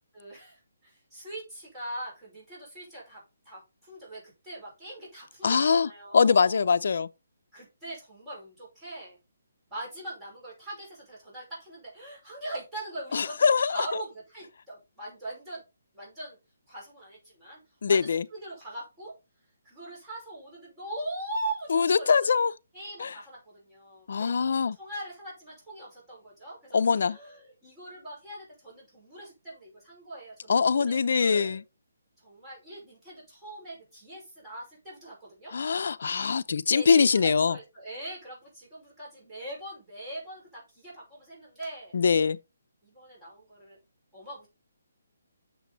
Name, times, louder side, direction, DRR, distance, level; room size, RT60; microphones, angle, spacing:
voice 1, 0.1-3.2 3.5-6.6 7.5-9.2 9.7-13.4 13.6-15.6 15.9-16.4 16.7-17.6 17.9-19.1 19.6-22.3 22.7-24.3 24.8-31.6 32.2-35.5 36.7-41.9 42.8-43.8 44.1-44.5, right 1 dB, 10° right, 5.4 m, -41 dB
voice 2, 5.4-7.1 13.1-13.9 17.8-18.2 21.7-22.5 23.0-23.1 24.1-24.8 26.7-27.2 30.5-31.6 35.5-37.6 41.9-42.4, left 5 dB, 60° left, 0.6 m, -23 dB
8.1 x 6.9 x 4.1 m
hypercardioid pair, 170°, 0 cm